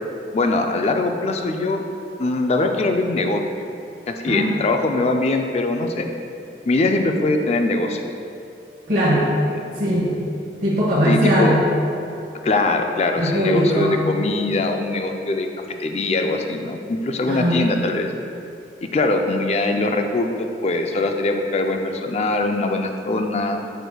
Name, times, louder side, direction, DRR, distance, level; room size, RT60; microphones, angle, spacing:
voice 1, 0.3-1.8 2.2-3.4 4.1-6.1 6.7-8.0 9.5-9.6 11.1-11.6 12.4-15.5 15.8-18.1 18.9-20.3 20.6-23.8, left 2 dB, 35° left, 5 dB, 0.4 m, -22 dB
voice 2, 4.3-4.6 8.9-9.3 9.7-10.1 10.6-11.6 13.2-14.0 17.3-17.8, equal, 50° right, -7 dB, 1.0 m, -19 dB
6.9 x 6.1 x 2.3 m, 2.6 s
head